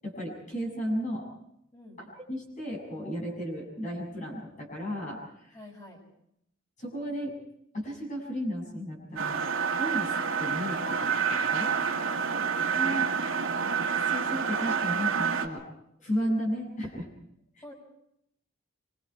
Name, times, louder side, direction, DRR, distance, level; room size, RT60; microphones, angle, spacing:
voice 1, 0.0-1.3 2.0-5.6 6.8-7.4 7.7-9.4 9.8-11.8 12.7-13.1 14.1-15.7 16.0-17.1, equal, 40° left, -1 dB, 7.3 m, -34 dB
voice 2, 5.5-6.0 11.9-12.9 17.6-17.7, left 1 dB, 20° left, 0 dB, 6.8 m, -48 dB
sound 1, 9.2-15.5, right 6 dB, 75° right, 2.2 m, -28 dB
25.5 x 24.0 x 4.7 m, 0.76 s
head